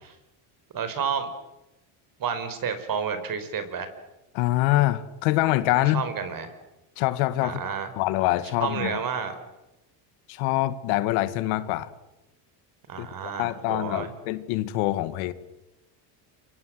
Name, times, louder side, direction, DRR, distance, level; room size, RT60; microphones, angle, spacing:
voice 1, 0.7-1.3 2.2-3.9 5.9-6.5 7.4-7.9 8.6-9.3 12.9-14.1, right 6 dB, 45° right, 10 dB, 5.0 m, -30 dB
voice 2, 4.3-6.0 7.0-7.6 7.9-9.0 10.3-11.9 13.0-15.3, left 16 dB, 80° left, 13 dB, 1.9 m, -25 dB
28.0 x 24.5 x 7.9 m, 0.97 s
supercardioid pair, 110°, 47 cm